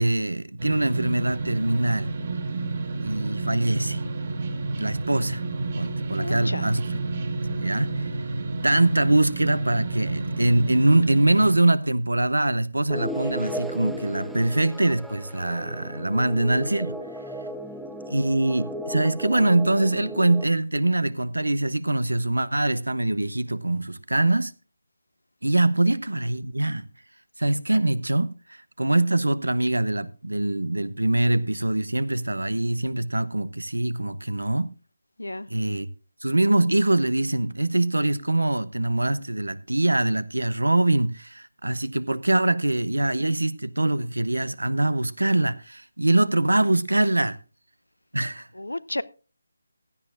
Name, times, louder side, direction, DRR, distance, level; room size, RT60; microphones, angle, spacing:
voice 1, 0.0-2.2 3.0-4.0 4.8-5.4 5.7-7.0 7.5-8.1 8.6-17.0 18.1-24.5 25.4-26.9 27.4-34.7 35.5-35.9 36.2-47.4 48.1-48.5, right 2 dB, 80° right, 0.9 m, -23 dB
sound 1, 0.6-11.5, right 3 dB, 40° right, 2.4 m, -30 dB
voice 2, 6.2-6.6 35.2-35.5 48.6-49.0, left 1 dB, 80° left, 0.8 m, -32 dB
sound 2, 12.9-20.4, equal, ahead, 0.8 m, -35 dB
16.5 x 12.0 x 2.5 m
figure-of-eight pair, 155°, 0 cm